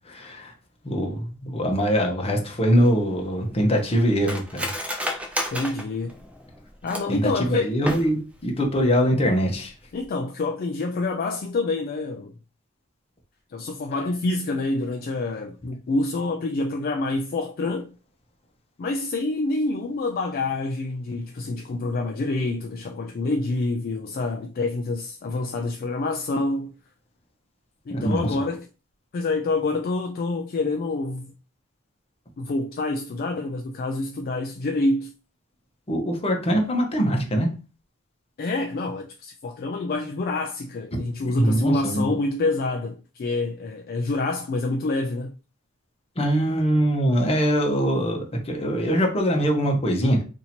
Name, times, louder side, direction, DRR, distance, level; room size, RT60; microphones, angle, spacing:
voice 1, 0.1-0.5 0.8-4.7 7.1-9.7 27.9-28.3 35.9-37.5 41.4-42.1 46.2-50.2, equal, 30° left, 0.9 m, -22 dB
Cutlery silverware, 2.8-7.3 7.7-8.4 8.7-8.8 9.2-9.5 9.9-10.0, equal, 5° right, 0.6 m, -32 dB
voice 2, 5.5-6.1 6.8-7.7 9.9-12.3 13.5-17.9 18.8-26.7 27.9-28.7 29.1-31.3 32.4-35.1 38.4-45.4, left 2 dB, 45° left, 0.3 m, -27 dB
2.8 x 2.6 x 4.2 m
head